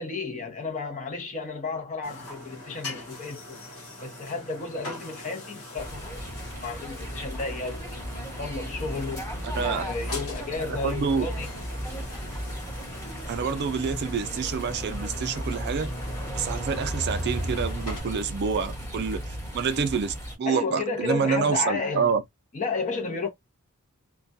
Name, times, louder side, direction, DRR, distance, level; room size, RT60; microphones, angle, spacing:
voice 1, 0.0-3.6 4.0-6.1 6.6-8.0 8.4-9.3 9.6-11.5 11.9-12.0 20.5-22.2 22.5-23.3, left 4 dB, 35° left, 0.7 m, -32 dB
sound 1, 2.0-18.0, left 1 dB, 75° left, 1.2 m, -42 dB
sound 2, 5.8-20.3, equal, 10° left, 1.1 m, -35 dB
voice 2, 10.8-11.3 13.3-15.9 16.3-22.2, right 5 dB, 50° right, 0.4 m, -27 dB
2.2 x 2.2 x 2.6 m
head